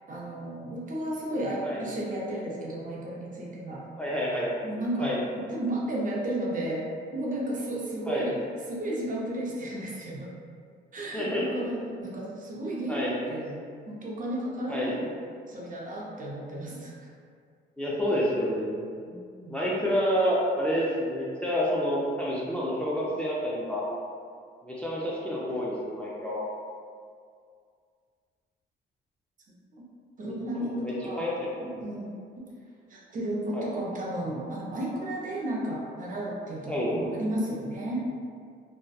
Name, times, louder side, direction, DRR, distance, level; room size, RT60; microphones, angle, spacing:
voice 1, 0.1-3.8 4.6-6.8 7.1-8.3 8.7-10.3 10.9-13.5 13.9-15.1 15.5-17.1 19.1-19.6 30.2-32.1 32.9-38.0, right 1 dB, 40° right, -4 dB, 0.5 m, -33 dB
voice 2, 4.0-4.5 5.0-5.2 8.1-8.3 11.1-11.5 12.9-13.2 14.7-14.9 17.8-18.9 19.5-23.9 24.6-26.4 30.2-31.7 33.5-33.7 36.7-36.9, equal, 5° left, -6 dB, 0.4 m, -29 dB
2.6 x 2.1 x 2.3 m, 2.2 s
cardioid pair, 90°, 20 cm